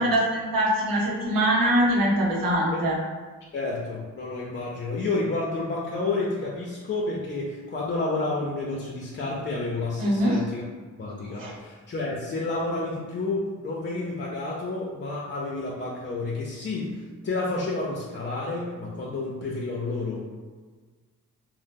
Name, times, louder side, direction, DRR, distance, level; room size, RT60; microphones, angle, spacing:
voice 1, 0.0-3.0 10.0-10.4 11.3-11.6, right 1 dB, 85° right, -4 dB, 0.8 m, -23 dB
voice 2, 3.5-10.6 11.0-20.2, left 2 dB, 35° left, -4 dB, 0.5 m, -30 dB
2.7 x 2.0 x 3.4 m, 1.4 s
cardioid pair, 75°, 33 cm